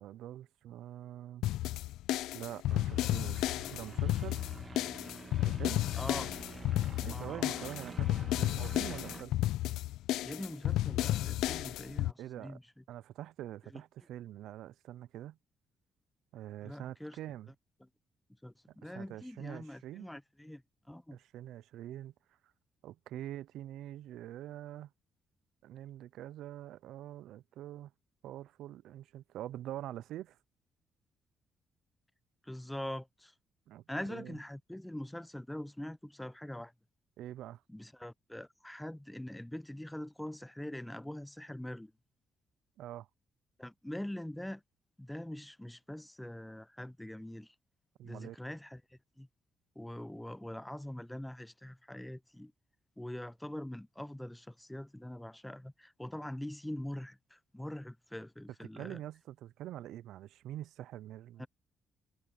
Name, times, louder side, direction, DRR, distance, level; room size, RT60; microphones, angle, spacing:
voice 1, 0.0-1.4 2.3-4.4 5.4-5.8 7.0-9.3 12.2-12.6 12.9-15.4 16.3-17.5 18.8-20.1 21.1-22.1 22.8-24.9 25.6-27.9 28.2-30.4 33.7-33.8 34.1-34.4 37.2-37.6 42.8-43.1 48.0-48.4 58.8-61.5, right 13 dB, 85° right, 0.4 m, -45 dB
Funk Shuffle C, 1.4-12.1, left 14 dB, 90° left, 0.4 m, -32 dB
sound 1, 2.7-9.2, right 4 dB, 30° right, 1.5 m, -48 dB
voice 2, 6.0-6.3 7.1-7.7 10.2-12.8 13.7-13.8 16.6-17.2 18.4-20.6 20.9-21.2 32.4-33.3 33.9-36.7 37.7-41.9 43.6-44.6 45.0-47.5 48.0-49.3 49.8-52.5 53.0-59.0 61.4-61.5, left 1 dB, 5° left, 0.5 m, -43 dB
cardioid pair, 90°, 0 cm